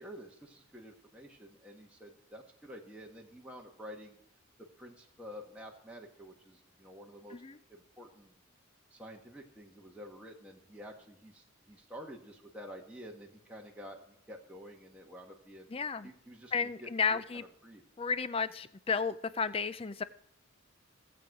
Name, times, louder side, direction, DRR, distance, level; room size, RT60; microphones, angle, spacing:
voice 1, 0.0-4.2 4.6-7.4 7.7-8.3 8.9-15.7 16.0-17.8, equal, 5° right, -1 dB, 1.3 m, -50 dB
voice 2, 15.7-16.1 16.5-17.4 18.0-20.0, left 5 dB, 25° left, 14 dB, 0.4 m, -33 dB
17.5 x 7.9 x 4.7 m, 0.74 s
head